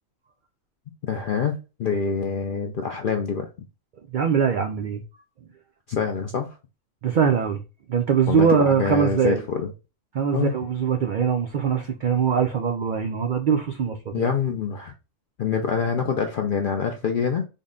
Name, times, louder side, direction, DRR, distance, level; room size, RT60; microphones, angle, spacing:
voice 1, 1.0-3.5 5.9-6.6 8.3-9.7 10.3-10.5 14.1-14.9 15.4-17.5, left 6 dB, 65° left, 0.5 m, -25 dB
voice 2, 4.1-5.0 7.0-7.6 7.9-9.4 10.1-14.3, right 7 dB, 80° right, 0.4 m, -22 dB
3.6 x 2.1 x 3.6 m
omnidirectional pair, 1.4 m